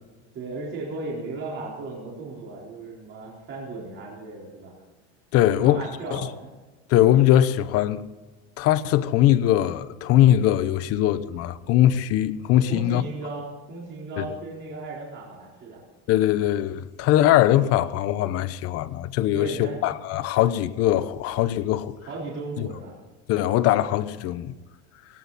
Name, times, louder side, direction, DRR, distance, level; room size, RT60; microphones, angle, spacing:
voice 1, 0.3-4.7 5.5-6.3 12.7-15.8 19.3-19.8 22.0-22.9, right 3 dB, 35° right, 4.4 m, -36 dB
voice 2, 5.3-5.8 6.1-6.2 6.9-8.0 8.6-13.0 14.2-14.3 16.1-21.9 22.6-22.7 23.3-24.5, left 12 dB, 45° left, 0.9 m, -21 dB
18.5 x 18.0 x 4.2 m
cardioid pair, 155°, 33 cm